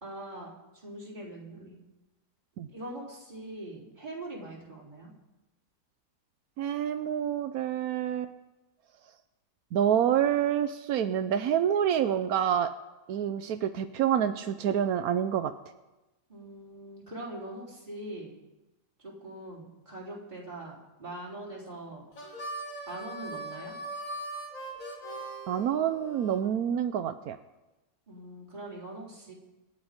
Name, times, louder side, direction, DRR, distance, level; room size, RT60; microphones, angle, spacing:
voice 1, 0.0-0.5 0.8-1.8 2.7-5.1 16.3-18.3 19.2-22.0 22.9-23.7 28.1-29.3, right 1 dB, 30° right, -5 dB, 3.9 m, -42 dB
voice 2, 6.6-8.3 9.7-12.7 13.1-15.5 25.5-27.4, right 9 dB, 85° right, 9 dB, 1.2 m, -27 dB
Harmonica, 22.1-26.4, right 2 dB, 65° left, 2.8 m, -40 dB
26.0 x 9.2 x 5.1 m, 1.0 s
omnidirectional pair, 1.5 m